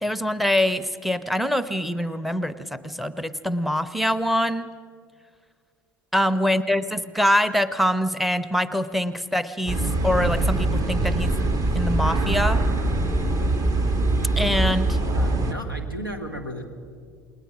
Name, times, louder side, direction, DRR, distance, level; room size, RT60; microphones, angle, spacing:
voice 1, 0.0-4.7 6.1-11.4 11.7-12.6 14.4-15.0, equal, ahead, 14 dB, 0.9 m, -24 dB
voice 2, 6.5-6.9 15.1-16.6, equal, 85° right, 7 dB, 2.0 m, -35 dB
sound 1, 9.7-15.5, right 2 dB, 30° right, 1.8 m, -23 dB
28.5 x 20.5 x 6.1 m, 2.1 s
figure-of-eight pair, 70°, 11 cm